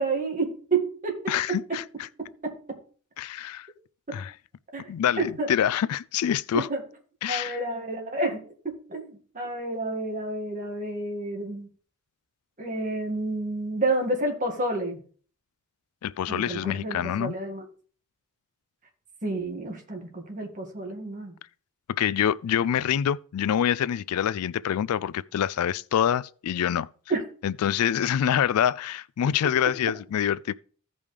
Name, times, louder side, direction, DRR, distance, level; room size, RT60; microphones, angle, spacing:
voice 1, 0.0-1.6 2.4-2.8 4.7-5.5 6.5-6.8 7.3-11.7 12.6-15.0 16.3-17.6 19.2-21.3 27.1-27.2, right 2 dB, 35° right, 1.9 m, -30 dB
voice 2, 1.3-2.1 3.2-3.7 4.1-4.3 4.9-6.7 7.2-7.6 16.0-17.3 21.9-26.9 27.4-30.5, left 9 dB, 75° left, 0.3 m, -26 dB
15.5 x 5.4 x 3.3 m
head